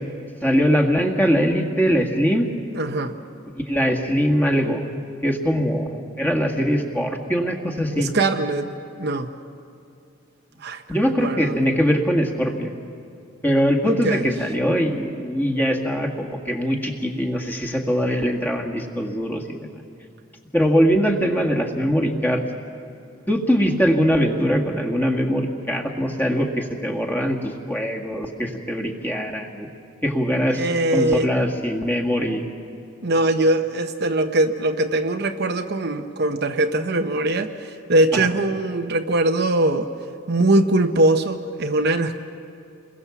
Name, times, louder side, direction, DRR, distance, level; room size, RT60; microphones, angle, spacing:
voice 1, 0.4-2.5 3.5-4.8 5.2-8.1 10.9-12.7 13.4-19.7 20.5-22.4 23.3-29.7 30.0-30.7 30.9-32.4 38.1-38.3, equal, 10° left, 1 dB, 1.9 m, -22 dB
voice 2, 2.7-3.1 8.0-8.7 9.0-9.3 10.6-10.8 11.2-11.5 13.8-14.2 30.5-31.3 33.0-39.9 40.3-42.2, right 2 dB, 50° right, 6 dB, 0.9 m, -21 dB
29.0 x 22.0 x 7.2 m, 2.5 s
head